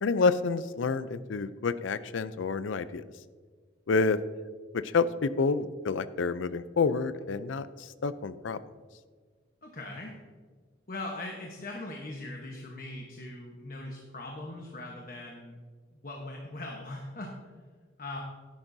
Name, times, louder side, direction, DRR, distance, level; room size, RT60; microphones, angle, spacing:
voice 1, 0.0-3.0 3.9-4.2 4.7-7.7 8.0-8.6, left 4 dB, 90° left, 14 dB, 0.5 m, -28 dB
voice 2, 9.6-10.1 10.9-15.5 15.9-17.3 18.0-18.2, left 2 dB, 45° left, 0 dB, 1.1 m, -40 dB
12.5 x 10.5 x 2.7 m, 1.5 s
head